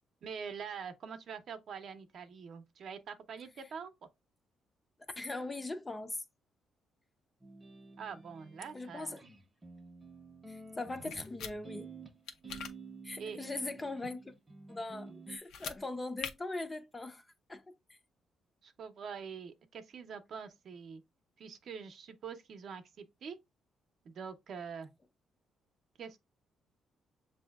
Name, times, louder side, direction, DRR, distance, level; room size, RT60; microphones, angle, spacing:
voice 1, 0.2-3.9 8.0-9.2 13.2-13.5 18.6-21.0 21.4-23.4 24.0-24.9 26.0-26.2, right 6 dB, 60° right, 0.6 m, -45 dB
voice 2, 5.1-6.2 8.7-9.3 10.5-11.9 13.0-14.2 14.7-18.0, left 2 dB, 15° left, 0.4 m, -40 dB
sound 1, 7.4-15.4, right 4 dB, 20° right, 0.7 m, -51 dB
sound 2, 11.1-11.5 12.3-12.7 15.4-15.8 16.2-16.3, left 7 dB, 85° left, 0.6 m, -41 dB
7.0 x 2.7 x 2.3 m
cardioid pair, 115°, 0 cm